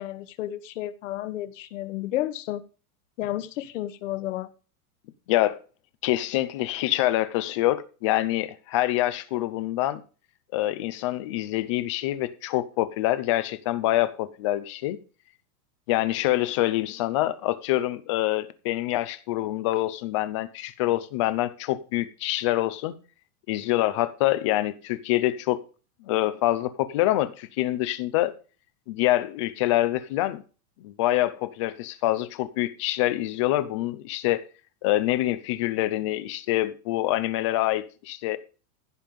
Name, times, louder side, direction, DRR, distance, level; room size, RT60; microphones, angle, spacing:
voice 1, 0.0-2.6 3.2-4.5, left 14 dB, 55° left, 1.5 m, -32 dB
voice 2, 6.0-10.0 10.5-15.0 15.9-23.0 23.5-25.6 26.0-28.3 28.9-30.4 30.8-34.4 34.8-38.4, left 15 dB, 20° left, 0.5 m, -26 dB
15.5 x 5.6 x 5.1 m
supercardioid pair, 175°, 44 cm